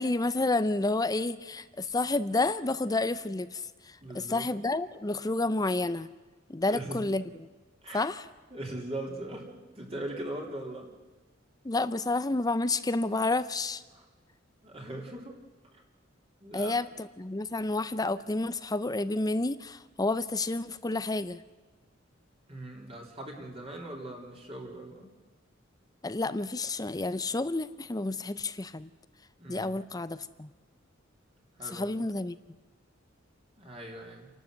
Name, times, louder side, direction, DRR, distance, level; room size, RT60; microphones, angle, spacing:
voice 1, 0.0-6.1 6.5-7.2 7.9-8.3 11.6-13.8 16.5-21.4 26.0-28.9 29.5-30.5 31.7-32.4, left 2 dB, 20° left, 14 dB, 0.6 m, -30 dB
voice 2, 4.0-4.5 6.7-7.0 7.8-8.1 8.5-10.9 13.9-14.1 14.6-15.4 15.7-15.8 16.4-16.7 22.5-25.1 29.4-29.8 31.6-32.0 33.6-34.3, right 1 dB, 30° right, 0 dB, 3.6 m, -40 dB
29.0 x 12.0 x 8.0 m, 1.3 s
head